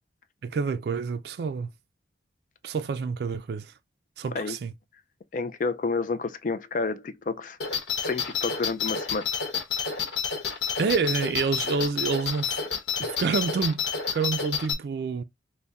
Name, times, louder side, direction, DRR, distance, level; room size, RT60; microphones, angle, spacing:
voice 1, 0.4-1.7 2.6-3.7 4.2-4.7 10.8-12.6 13.0-13.8 14.1-15.2, right 5 dB, 60° right, 0.3 m, -28 dB
voice 2, 4.2-4.6 5.3-7.6 8.0-9.3, left 4 dB, 45° left, 0.4 m, -30 dB
sound 1, 7.6-14.7, left 6 dB, 80° left, 1.0 m, -29 dB
3.5 x 2.1 x 4.0 m
head